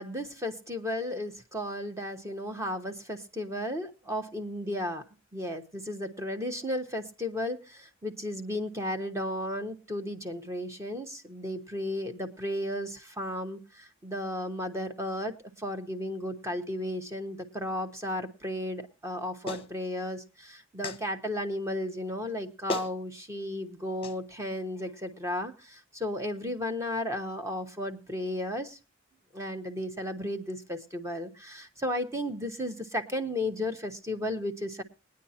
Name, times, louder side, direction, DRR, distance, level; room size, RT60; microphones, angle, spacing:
voice 1, 0.0-5.0 5.3-28.8 29.3-34.8, left 1 dB, 15° right, 6 dB, 1.0 m, -34 dB
Clapping, 19.5-19.7 20.8-21.0 22.3-22.4 22.7-22.9 24.0-24.2, left 2 dB, 30° left, 0.9 m, -34 dB
21.5 x 9.5 x 2.8 m, 0.34 s
head